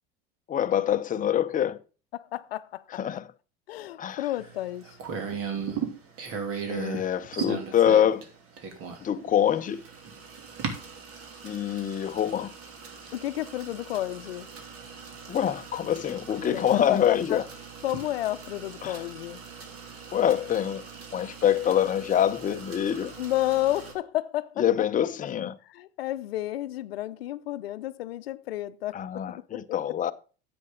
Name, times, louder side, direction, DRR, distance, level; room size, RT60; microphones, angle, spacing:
voice 1, 0.5-1.8 2.9-3.3 4.0-4.2 6.7-8.2 9.0-9.8 11.4-12.5 15.3-17.4 18.8-19.0 20.1-20.8 21.1-23.1 24.6-25.5 28.9-30.1, left 10 dB, 25° left, 0.7 m, -25 dB
voice 2, 2.1-3.0 3.7-5.0 13.1-14.5 16.5-17.4 17.8-19.4 23.2-24.6 25.7-29.2 29.5-29.6, left 14 dB, 90° left, 0.6 m, -31 dB
sound 1, 4.4-23.9, right 6 dB, 50° right, 2.8 m, -39 dB
9.7 x 7.8 x 3.8 m
hypercardioid pair, 90°, 29 cm